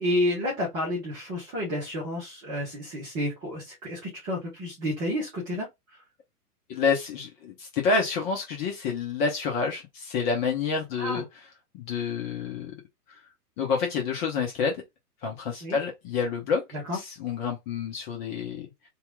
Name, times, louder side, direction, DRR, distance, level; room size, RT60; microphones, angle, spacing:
voice 1, 0.0-5.7 11.0-11.2 15.6-15.8 16.9-17.0, left 1 dB, 10° right, 0.4 m, -30 dB
voice 2, 6.7-11.2 11.7-12.7 13.1-13.2 13.6-14.8 15.2-16.6 16.9-18.7, left 5 dB, 30° left, 0.8 m, -28 dB
2.9 x 2.4 x 3.4 m
figure-of-eight pair, 110°, 47 cm